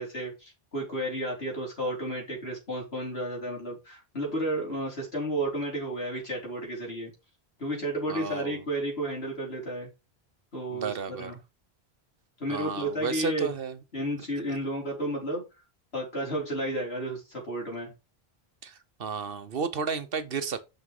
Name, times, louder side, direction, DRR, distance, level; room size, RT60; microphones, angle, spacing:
voice 1, 0.0-7.1 7.6-9.9 10.5-11.4 12.4-13.5 13.9-15.4 15.9-17.9, right 1 dB, 85° left, 4.6 m, -32 dB
voice 2, 8.1-8.6 10.7-11.3 12.5-13.8 18.6-20.6, right 5 dB, 65° right, 1.2 m, -33 dB
6.8 x 6.1 x 4.9 m
omnidirectional pair, 1.0 m